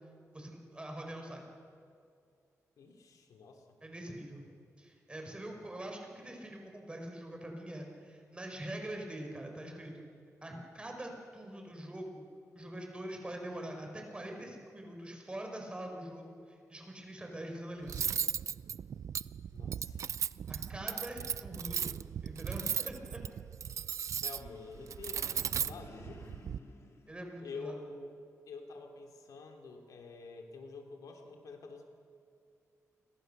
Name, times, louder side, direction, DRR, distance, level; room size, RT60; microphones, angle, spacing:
voice 1, 0.3-1.5 3.8-4.4 4.8-10.1 10.4-12.3 12.5-18.1 20.5-23.2 27.1-27.8, right 1 dB, 20° right, 2 dB, 4.9 m, -44 dB
voice 2, 2.8-3.8 19.5-20.0 24.2-26.3 27.4-28.1 28.5-31.9, left 4 dB, 80° left, 3 dB, 3.0 m, -48 dB
Cutlery silverware, 17.9-26.6, right 8 dB, 65° right, 0.5 m, -37 dB
sound 1, 24.4-28.0, left 3 dB, 50° left, 2.9 m, -56 dB
29.0 x 23.5 x 6.8 m, 2.4 s
wide cardioid pair, 115°, 6 cm